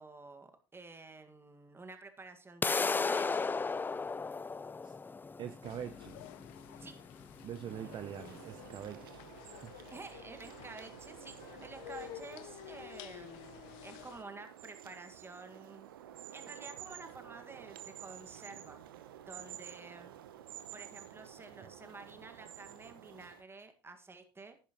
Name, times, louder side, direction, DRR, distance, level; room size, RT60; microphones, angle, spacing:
voice 1, 0.0-3.5 6.8-7.0 9.9-15.9 16.3-18.8 19.3-20.1 20.7-24.6, right 3 dB, 20° right, 7 dB, 1.8 m, -50 dB
sound 1, 2.6-8.6, left 4 dB, 15° left, 0.4 m, -35 dB
voice 2, 5.4-6.2 7.4-9.2 9.5-9.8, right 9 dB, 45° right, 11 dB, 0.7 m, -44 dB
sound 2, 5.6-14.2, left 15 dB, 65° left, 0.6 m, -51 dB
sound 3, 7.7-23.4, right 11 dB, 80° right, 0.9 m, -51 dB
11.0 x 10.0 x 3.0 m, 0.34 s
hypercardioid pair, 65°, 12 cm